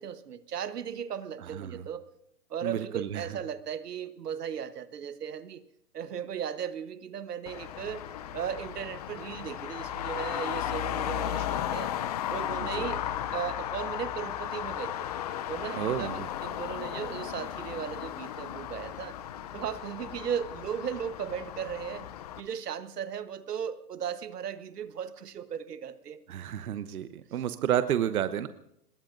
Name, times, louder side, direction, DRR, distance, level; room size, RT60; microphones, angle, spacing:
voice 1, 0.0-2.1 2.5-5.6 5.9-8.0 8.3-11.9 12.3-15.1 15.5-19.2 19.5-22.1 22.4-26.2, right 8 dB, 85° right, 12 dB, 1.3 m, -36 dB
voice 2, 1.4-1.8 2.6-3.3 12.6-12.9 15.8-16.3 26.3-28.5, right 10 dB, 70° right, 11 dB, 1.0 m, -31 dB
Traffic noise roadway noise, 7.5-22.4, left 11 dB, 25° left, 0.5 m, -35 dB
26.0 x 21.5 x 2.6 m, 0.75 s
hypercardioid pair, 145°, 46 cm